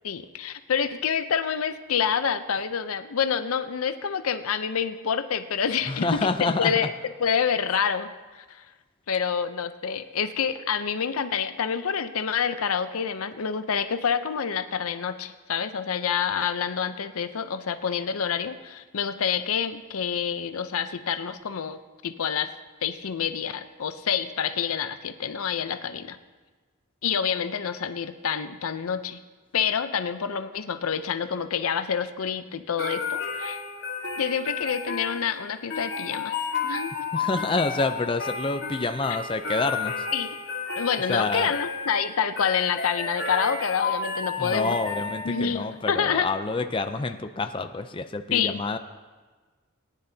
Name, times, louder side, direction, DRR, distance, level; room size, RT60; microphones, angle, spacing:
voice 1, 0.0-6.9 7.2-8.1 8.3-8.6 9.1-22.5 22.8-26.2 27.0-29.2 29.5-33.6 34.2-36.3 36.6-36.9 40.1-40.4 40.8-44.8 45.2-46.3 48.3-48.8, left 7 dB, 90° left, 10 dB, 0.6 m, -27 dB
voice 2, 5.9-6.7 37.1-39.9 41.1-41.5 44.4-48.8, left 3 dB, 25° left, 7 dB, 0.4 m, -27 dB
sound 1, 32.8-45.6, left 4 dB, 55° left, 1.7 m, -32 dB
19.0 x 9.9 x 2.8 m, 1.3 s
head